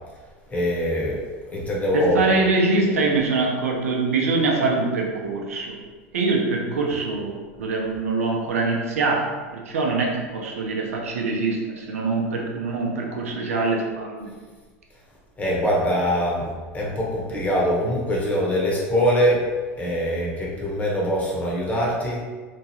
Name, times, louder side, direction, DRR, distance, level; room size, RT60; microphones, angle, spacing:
voice 1, 0.5-1.2 1.5-2.2 15.4-16.5 16.7-19.4 19.8-22.2, equal, 20° left, -4 dB, 0.9 m, -23 dB
voice 2, 1.9-5.8 6.1-14.3, right 3 dB, 90° right, 0 dB, 0.5 m, -24 dB
2.9 x 2.4 x 2.8 m, 1.4 s
hypercardioid pair, 100°, 8 cm